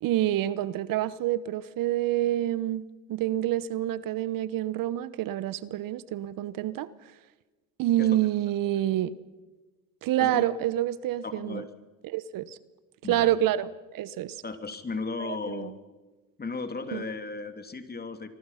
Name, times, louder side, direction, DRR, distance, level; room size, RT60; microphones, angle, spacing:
voice 1, 0.0-2.8 3.1-6.9 7.8-9.1 10.0-11.6 12.0-12.6 13.1-14.4 15.2-15.7 16.9-17.1, right 13 dB, 60° right, 17 dB, 1.0 m, -27 dB
voice 2, 11.2-11.7 13.0-13.3 14.4-15.7 16.4-18.3, left 4 dB, 25° left, 8 dB, 2.9 m, -35 dB
25.5 x 23.0 x 5.8 m, 1.2 s
supercardioid pair, 75°, 38 cm